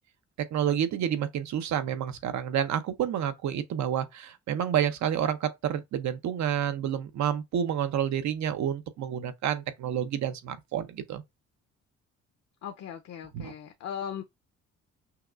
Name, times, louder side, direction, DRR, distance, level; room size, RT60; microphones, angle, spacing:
voice 1, 0.5-11.2 13.3-13.5, right 9 dB, 65° right, 0.7 m, -29 dB
voice 2, 12.6-14.2, left 8 dB, 60° left, 0.7 m, -38 dB
5.7 x 2.3 x 2.5 m
cardioid pair, 90°, 30 cm